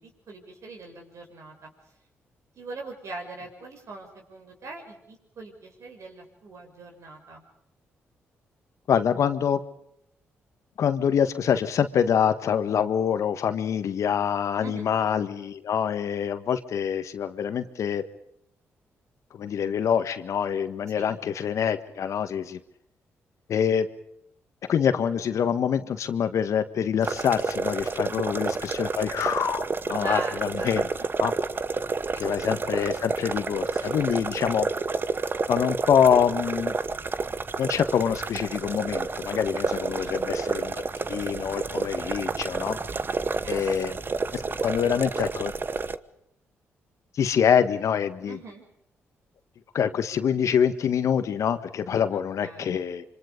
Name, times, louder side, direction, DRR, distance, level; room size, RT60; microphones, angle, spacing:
voice 1, 0.0-1.7 2.6-7.4 14.6-14.9 21.0-21.1 28.0-28.4 30.0-30.9 31.2-31.3 32.1-32.8 33.8-34.6 39.8-40.2 43.1-43.8 48.2-48.6 52.1-52.8, right 3 dB, 65° right, 2 dB, 6.6 m, -42 dB
voice 2, 8.9-9.6 10.8-18.0 19.3-22.6 23.5-23.9 24.7-30.9 31.2-31.3 32.2-34.7 35.5-36.7 37.6-40.8 41.1-42.8 43.5-43.9 44.3-45.5 47.1-48.4 49.7-53.0, left 8 dB, 70° left, 11 dB, 1.5 m, -25 dB
sound 1, 27.0-46.0, right 4 dB, 40° right, 1.1 m, -30 dB
26.0 x 25.0 x 5.3 m, 0.76 s
supercardioid pair, 55°, 5 cm